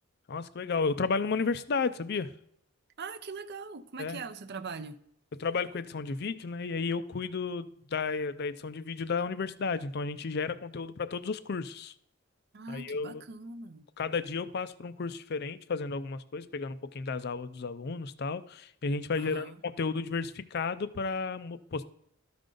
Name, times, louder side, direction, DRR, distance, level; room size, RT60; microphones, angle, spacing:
voice 1, 0.3-2.3 4.0-4.2 5.4-11.9 12.7-13.2 14.0-21.8, left 4 dB, 50° left, 0.4 m, -33 dB
voice 2, 3.0-5.0 12.5-13.9 19.1-19.5, right 4 dB, 50° right, 0.5 m, -41 dB
13.0 x 5.2 x 3.8 m
head